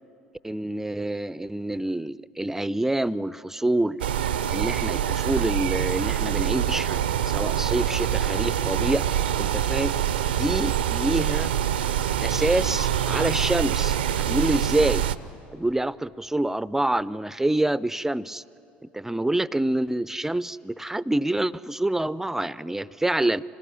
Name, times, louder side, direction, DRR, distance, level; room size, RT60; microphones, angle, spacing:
voice 1, 0.4-4.0 4.5-7.0 7.2-9.1 9.4-10.0 10.4-11.5 12.2-15.1 15.5-18.4 18.8-23.4, right 1 dB, 5° right, 19 dB, 0.5 m, -26 dB
sound 1, 4.0-15.2, right 10 dB, 80° right, 0.6 m, -25 dB
26.5 x 20.0 x 10.0 m, 2.8 s
figure-of-eight pair, 65°, 5 cm